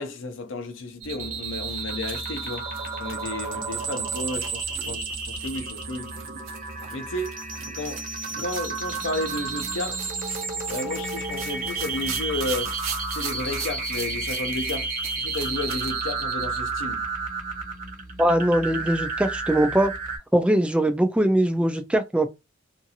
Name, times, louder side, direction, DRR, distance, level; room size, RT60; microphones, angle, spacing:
voice 1, 0.0-2.7 3.0-6.1 6.9-7.3 7.7-8.1 8.4-10.0 10.7-12.8 13.1-14.9 15.2-17.0, left 2 dB, 65° left, 0.5 m, -32 dB
sound 1, 1.0-20.2, right 4 dB, 40° right, 0.8 m, -31 dB
sound 2, 1.7-15.9, right 7 dB, 75° right, 0.8 m, -40 dB
voice 2, 18.2-19.9 20.3-22.3, right 1 dB, 5° right, 0.3 m, -21 dB
2.6 x 2.4 x 2.7 m
head